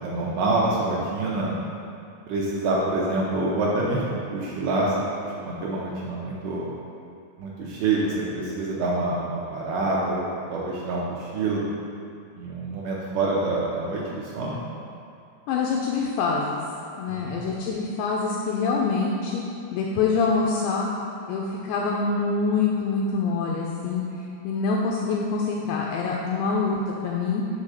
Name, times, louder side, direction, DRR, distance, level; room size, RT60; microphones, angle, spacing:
voice 1, 0.0-1.5 2.3-6.7 7.4-11.6 12.4-14.6 17.1-17.4, right 2 dB, 80° right, -5 dB, 2.6 m, -26 dB
voice 2, 15.5-16.6 17.0-19.4 19.7-20.9 21.3-24.0 24.4-27.4, left 4 dB, 85° left, -2 dB, 2.5 m, -25 dB
7.4 x 3.7 x 6.5 m, 2.5 s
omnidirectional pair, 5.5 m